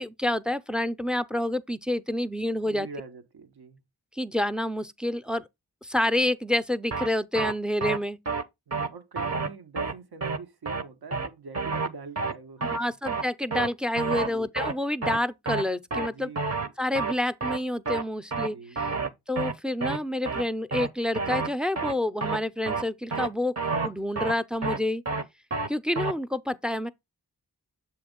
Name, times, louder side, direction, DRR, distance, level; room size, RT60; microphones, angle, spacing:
voice 1, 0.0-2.9 4.2-5.4 5.8-8.2 12.6-16.3 16.8-18.9 19.3-23.5 23.8-25.0 25.7-26.9, left 1 dB, ahead, 0.5 m, -28 dB
voice 2, 2.6-3.8 8.7-12.9 14.1-14.5 16.1-16.7 18.4-19.2, right 4 dB, 80° right, 1.0 m, -45 dB
sound 1, 6.9-7.1 7.3-7.5 7.8-8.0 8.3-8.4 8.7-8.9 9.2-9.5 9.8-9.9 10.2-10.4 10.7-10.8 11.1-11.3 11.5-11.9 12.2-12.3 12.6-12.8 13.1-13.2 13.5-13.7 14.0-14.3 14.6-14.7 15.0-15.2 15.5-15.6 15.9-16.1 16.4-16.7 16.9-17.1 17.4-17.6 17.9-18.0 18.3-18.5 18.8-19.1 19.4-19.5 19.8-20.0 20.3-20.4 20.7-20.9 21.1-21.5 21.8-21.9 22.2-22.4 22.7-22.8 23.1-23.3 23.6-23.9 24.2-24.3 24.6-24.8 25.1-25.2 25.5-25.7 26.0-26.1, right 4 dB, 40° right, 0.8 m, -29 dB
7.1 x 3.1 x 5.1 m
cardioid pair, 40°, 38 cm